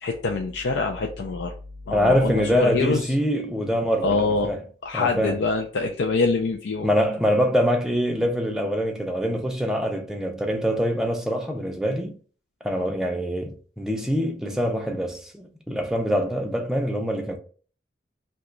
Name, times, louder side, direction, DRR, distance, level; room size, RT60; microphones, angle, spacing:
voice 1, 0.0-1.5 1.9-3.1 4.0-4.5 4.8-6.9, left 3 dB, 85° left, 0.4 m, -25 dB
voice 2, 1.9-4.6 4.9-5.4 6.8-12.2 12.6-17.4, equal, 5° right, 0.4 m, -24 dB
2.9 x 2.2 x 3.7 m
head